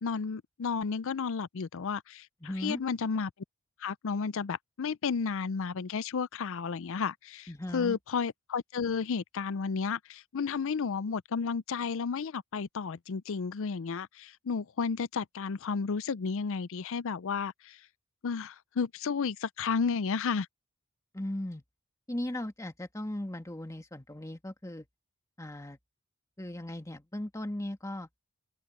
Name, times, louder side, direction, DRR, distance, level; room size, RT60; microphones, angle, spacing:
voice 1, 0.0-2.3 2.6-3.3 3.8-17.8 18.2-20.5, left 5 dB, 60° left, 0.5 m, -32 dB
voice 2, 2.4-2.8 7.5-8.0 21.1-21.6 22.1-24.9 25.4-25.8 26.4-28.1, left 1 dB, 15° left, 1.6 m, -37 dB
head